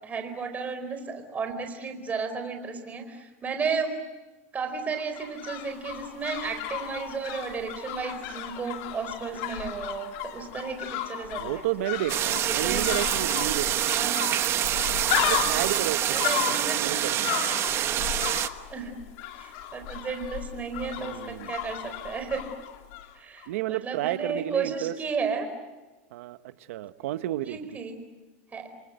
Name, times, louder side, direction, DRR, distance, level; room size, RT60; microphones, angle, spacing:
voice 1, 0.0-3.9 4.5-11.5 11.8-11.9 12.6-12.9 13.9-14.3 16.1-16.9 18.7-18.9 19.4-22.5 23.2-25.5 27.4-28.0 28.5-28.7, right 5 dB, 20° right, 7 dB, 4.6 m, -33 dB
sound 1, 4.9-23.1 23.4-23.5, left 10 dB, 60° left, 3.4 m, -34 dB
voice 2, 11.4-13.8 15.2-17.3 21.0-21.5 23.5-24.9 26.1-27.6, right 15 dB, 75° right, 12 dB, 1.2 m, -32 dB
sound 2, 12.1-18.5, right 11 dB, 35° right, 1.2 m, -26 dB
29.5 x 23.5 x 8.1 m, 1.2 s
supercardioid pair, 140°, 7 cm